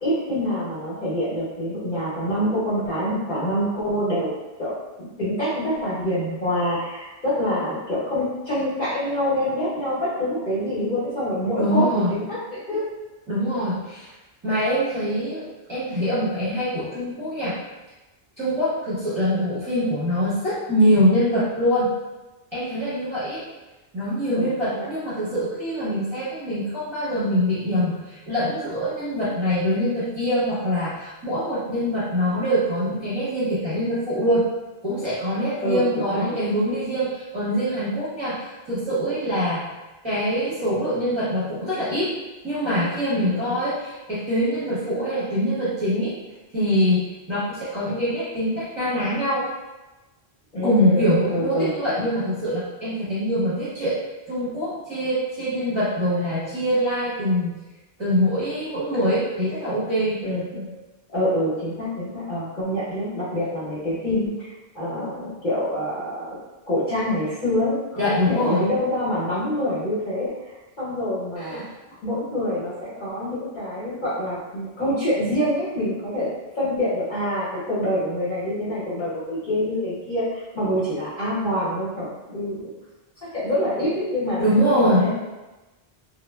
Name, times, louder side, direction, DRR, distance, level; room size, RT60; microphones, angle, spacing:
voice 1, 0.0-12.8 24.3-24.9 35.6-35.8 36.1-36.3 43.1-43.4 50.5-51.0 51.3-51.7 60.2-60.4 61.1-64.5 64.7-66.4 66.7-70.3 70.8-71.6 72.0-82.7 83.2-84.4 84.7-85.1, equal, 45° left, -10 dB, 0.9 m, -26 dB
voice 2, 11.6-12.1 13.3-14.1 14.4-17.6 18.4-21.9 22.5-23.4 23.9-34.5 34.8-39.7 40.0-42.1 42.4-46.2 46.5-49.5 50.6-54.0 54.3-57.5 58.0-60.2 60.5-60.7 68.0-68.7 71.4-71.7 84.4-85.0, equal, 30° right, -12 dB, 0.8 m, -24 dB
3.1 x 2.1 x 2.2 m, 1.1 s
omnidirectional pair, 1.0 m